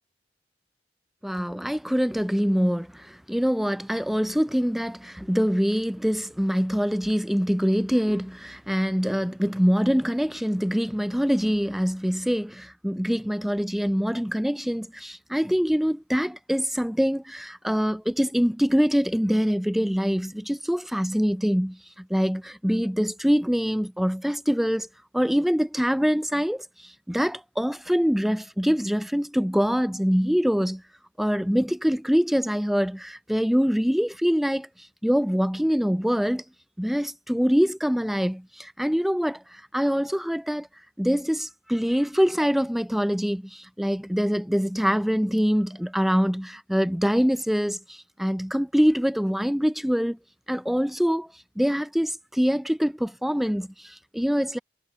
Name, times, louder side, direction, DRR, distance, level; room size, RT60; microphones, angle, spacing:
voice 1, 1.2-24.9 25.1-30.8 31.2-34.7 35.0-36.4 36.8-40.7 41.0-50.2 50.5-51.3 51.6-54.6, equal, ahead, 0.3 m, -24 dB
head